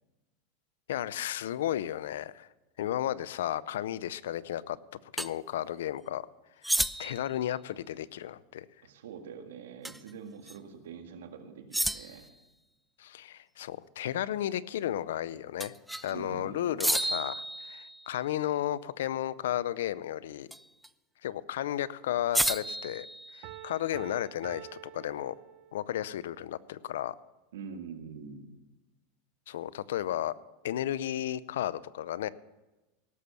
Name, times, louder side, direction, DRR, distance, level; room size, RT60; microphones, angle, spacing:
voice 1, 0.9-2.5 2.8-4.8 5.1-6.3 7.0-8.7 13.0-15.7 16.0-20.5 21.2-23.1 23.3-24.7 24.9-25.3 25.7-27.1 29.5-30.3 30.6-32.3, left 12 dB, 85° left, 19 dB, 0.5 m, -33 dB
sound 1, 5.2-5.3 6.6-7.3 9.8-10.1 10.5-10.6 11.7-12.3 15.6-16.1 16.8-18.2 20.5-20.9 22.3-23.7, right 1 dB, 5° right, 0.4 m, -32 dB
voice 2, 8.8-12.3 16.1-16.7 27.5-28.5, right 6 dB, 85° right, 6 dB, 1.8 m, -45 dB
Piano, 23.4-26.0, right 13 dB, 60° right, 0.6 m, -48 dB
17.5 x 7.1 x 6.8 m, 1.1 s
supercardioid pair, 120°, 0 cm